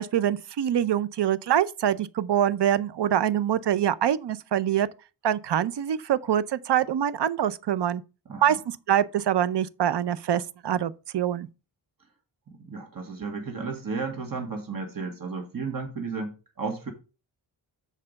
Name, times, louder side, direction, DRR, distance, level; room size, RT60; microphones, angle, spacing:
voice 1, 0.0-4.9 5.2-8.0 8.4-8.6 8.9-11.5, right 10 dB, 60° right, 0.7 m, -24 dB
voice 2, 12.6-16.9, right 4 dB, 45° right, 2.1 m, -33 dB
6.7 x 4.9 x 5.3 m
cardioid pair, 55°, 46 cm